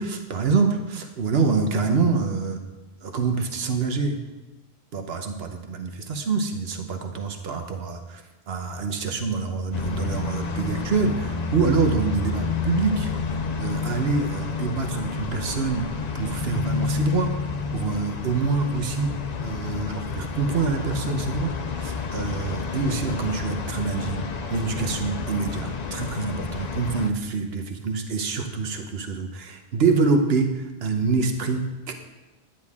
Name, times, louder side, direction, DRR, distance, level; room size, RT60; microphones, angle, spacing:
voice 1, 0.0-2.6 3.0-4.2 4.9-8.2 8.5-13.1 13.6-15.9 16.1-17.4 17.7-19.1 19.4-24.2 24.5-31.9, right 4 dB, 70° right, 5 dB, 1.2 m, -26 dB
sound 1, 9.7-27.1, left 4 dB, 50° left, 0.6 m, -30 dB
10.5 x 9.7 x 3.6 m, 1.1 s
omnidirectional pair, 1.1 m